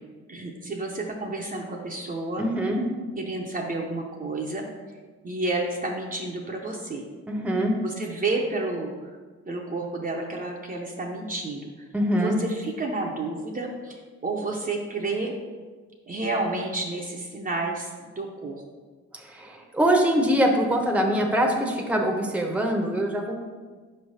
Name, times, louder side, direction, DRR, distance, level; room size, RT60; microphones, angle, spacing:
voice 1, 0.3-2.4 3.2-4.7 5.2-7.1 7.8-9.1 9.5-11.9 12.1-15.3 16.1-18.6, right 2 dB, 30° right, -1 dB, 0.7 m, -30 dB
voice 2, 2.4-2.8 7.3-7.8 11.9-12.4 19.1-23.3, equal, 5° right, 1 dB, 0.8 m, -23 dB
5.4 x 3.3 x 5.5 m, 1.4 s
cardioid pair, 90°, 30 cm